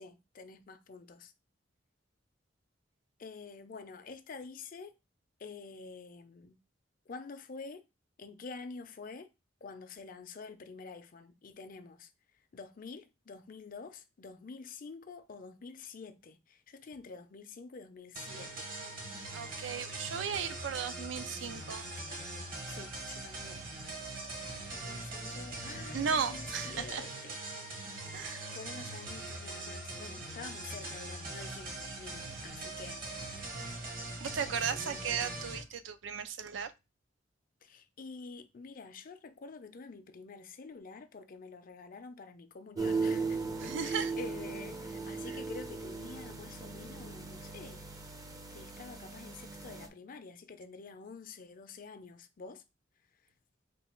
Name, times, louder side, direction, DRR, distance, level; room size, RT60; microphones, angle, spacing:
voice 1, 0.0-1.3 3.2-4.9 5.4-6.6 7.1-7.8 8.2-9.3 9.6-12.1 12.5-18.7 22.7-23.7 24.7-27.4 28.5-33.1 34.5-35.3 37.6-47.8 48.5-52.6, left 4 dB, 50° left, 0.5 m, -48 dB
sound 1, 18.1-35.6, right 2 dB, 50° right, 1.0 m, -42 dB
voice 2, 19.3-21.9 25.9-27.1 28.1-28.5 31.8-32.0 34.2-36.7 43.6-44.1 45.3-45.4, right 6 dB, 80° right, 0.4 m, -36 dB
sound 2, 42.8-49.9, right 4 dB, 20° right, 0.5 m, -37 dB
3.3 x 2.3 x 4.3 m
head